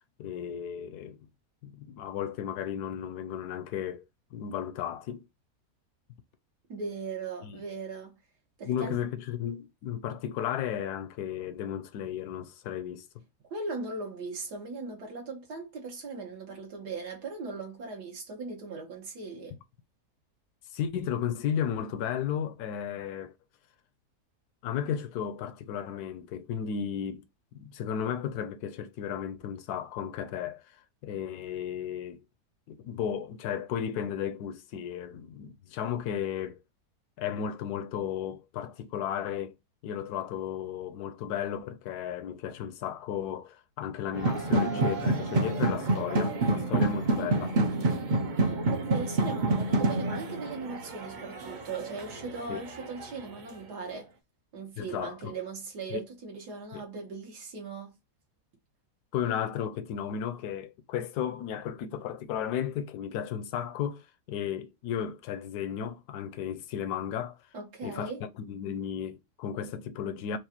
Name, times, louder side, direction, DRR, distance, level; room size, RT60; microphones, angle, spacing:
voice 1, 0.2-1.2 1.6-4.0 4.3-5.3 7.4-7.6 8.6-13.2 20.7-23.3 24.6-27.2 27.5-30.6 31.0-32.2 32.7-36.6 37.2-39.5 39.8-47.6 52.5-52.6 54.8-55.4 55.9-56.0 56.7-56.8 59.1-67.4 67.8-70.4, left 9 dB, 75° left, 1.1 m, -34 dB
voice 2, 6.7-8.2 8.6-9.0 13.5-19.6 48.6-54.1 54.5-57.9 67.5-68.2, right 4 dB, 80° right, 1.8 m, -38 dB
sound 1, 44.1-53.0, right 2 dB, 60° right, 0.5 m, -28 dB
4.7 x 2.5 x 2.9 m
omnidirectional pair, 1.7 m